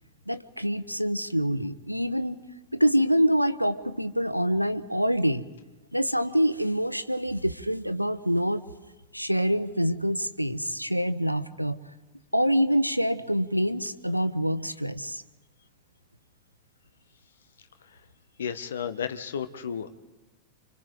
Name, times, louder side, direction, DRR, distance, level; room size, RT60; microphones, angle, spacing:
voice 1, 0.3-2.4 2.7-5.5 5.9-8.6 9.1-11.8 12.3-15.2, equal, 90° right, 14 dB, 0.8 m, -26 dB
voice 2, 18.4-19.9, left 7 dB, 65° left, 10 dB, 1.1 m, -33 dB
29.5 x 25.5 x 3.8 m, 1.1 s
figure-of-eight pair, 90°, 0 cm